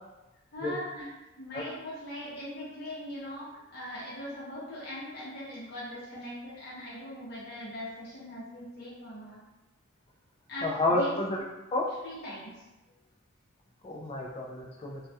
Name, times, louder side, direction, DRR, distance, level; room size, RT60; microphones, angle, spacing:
voice 1, 0.5-9.4 10.5-11.2 12.0-12.5, left 1 dB, 50° left, -8 dB, 0.7 m, -40 dB
voice 2, 10.6-11.4 11.7-11.9 13.8-15.0, left 2 dB, 30° left, -1 dB, 0.3 m, -29 dB
2.3 x 2.1 x 2.6 m, 1.0 s
head